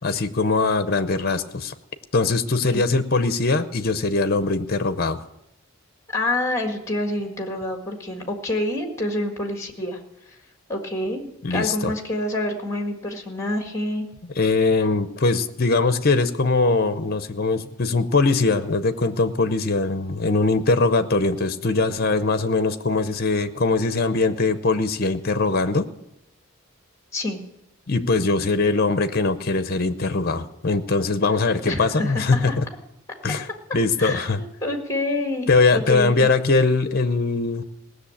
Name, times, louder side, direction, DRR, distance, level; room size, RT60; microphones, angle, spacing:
voice 1, 0.0-1.7 2.1-5.2 11.4-11.9 14.4-25.9 27.9-32.7 33.2-34.4 35.5-37.6, left 3 dB, 45° left, 11 dB, 0.7 m, -21 dB
voice 2, 6.1-10.0 10.7-14.1 27.1-27.4 31.7-32.6 34.0-36.3, left 1 dB, 15° left, 3 dB, 1.7 m, -27 dB
17.5 x 6.5 x 8.5 m, 0.87 s
head